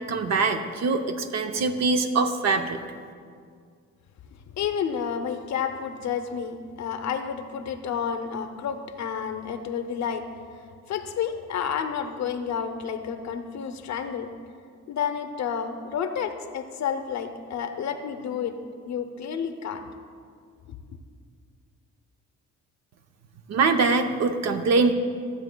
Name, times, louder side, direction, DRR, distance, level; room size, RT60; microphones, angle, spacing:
voice 1, 0.1-2.8 23.5-24.9, right 4 dB, 60° right, 6 dB, 0.6 m, -23 dB
voice 2, 4.6-10.3 10.9-14.3 14.9-18.6 18.9-19.8, left 7 dB, 65° left, 7 dB, 0.6 m, -30 dB
15.0 x 7.8 x 2.2 m, 2.2 s
cardioid pair, 90°, 30 cm